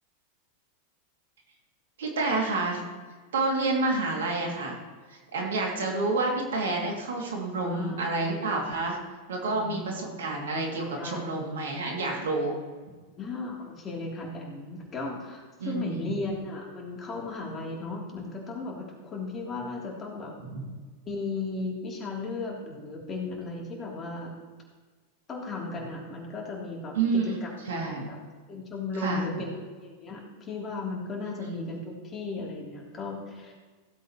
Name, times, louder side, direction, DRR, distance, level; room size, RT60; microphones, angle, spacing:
voice 1, 2.0-2.8 3.3-4.8 5.1-9.0 9.3-12.5 15.6-16.1 20.5-20.6 26.9-27.4 27.7-28.1 29.0-29.2 31.5-31.6, right 3 dB, 75° right, 0 dB, 2.6 m, -29 dB
voice 2, 7.6-8.3 9.5-9.9 11.0-11.5 13.2-20.3 21.0-24.3 25.3-28.2 28.5-33.5, left 3 dB, 30° left, -2 dB, 3.3 m, -36 dB
16.0 x 8.1 x 3.1 m, 1.4 s
hypercardioid pair, 95°, 0 cm